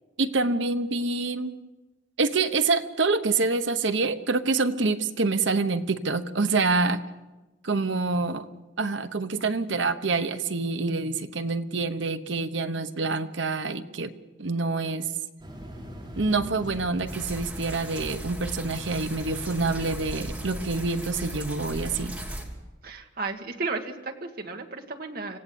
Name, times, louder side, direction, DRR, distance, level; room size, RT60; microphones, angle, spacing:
voice 1, 0.2-1.6 2.2-7.0 7.6-8.5 8.8-14.1 14.4-15.0 16.2-22.2, right 3 dB, 75° right, 10 dB, 1.0 m, -26 dB
sound 1, 15.4-20.4, equal, 25° right, 5.5 m, -44 dB
sound 2, 17.1-22.5, right 1 dB, 5° right, 3.0 m, -37 dB
voice 2, 22.8-25.4, right 3 dB, 50° right, 3 dB, 1.8 m, -34 dB
26.0 x 17.0 x 7.0 m, 1.1 s
head